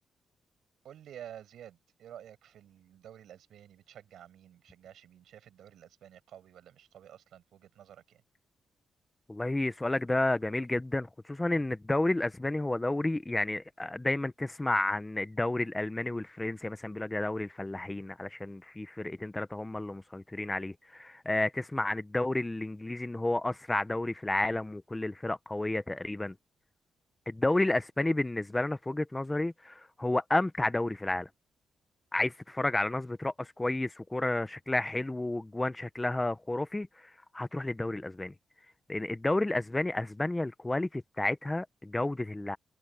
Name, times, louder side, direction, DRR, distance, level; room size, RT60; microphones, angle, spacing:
voice 1, 0.8-8.2, right 10 dB, 80° right, 6.8 m, -51 dB
voice 2, 9.3-26.3 27.3-31.3 32.1-36.9 37.3-38.3 38.9-42.6, left 2 dB, 10° left, 0.6 m, -31 dB
wide cardioid pair, 170°, 0 cm